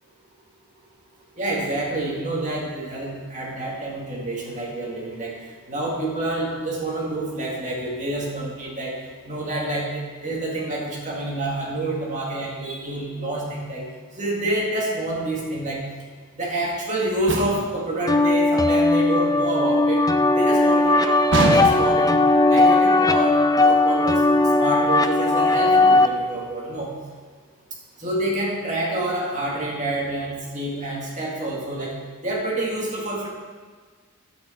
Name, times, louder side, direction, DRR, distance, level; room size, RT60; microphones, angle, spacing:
voice 1, 1.4-5.3 5.7-9.0 9.2-13.8 14.2-15.8 16.3-20.0 20.3-21.2 21.5-22.1 22.5-23.4 23.6-24.2 24.6-26.9 28.0-31.9 32.2-33.3, right 1 dB, 35° right, -4 dB, 2.1 m, -27 dB
sound 1, 17.3-17.8 21.3-22.1, right 2 dB, 60° right, 1.0 m, -23 dB
sound 2, 18.1-26.1, left 2 dB, 15° left, 0.3 m, -18 dB
10.5 x 8.7 x 4.5 m, 1.5 s
head